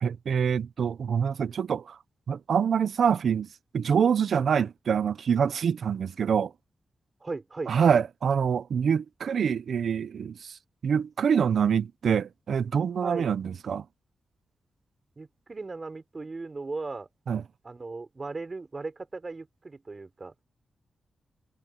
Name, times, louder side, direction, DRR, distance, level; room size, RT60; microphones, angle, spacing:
voice 1, 0.0-2.0 2.3-3.5 3.7-6.5 7.7-10.6 10.8-13.8 17.3-17.4, right 7 dB, 70° right, 0.8 m, -25 dB
voice 2, 7.2-7.7 13.0-13.3 15.2-17.1 17.6-20.3, right 3 dB, 35° right, 6.5 m, -37 dB
cardioid pair, 85°, 0 cm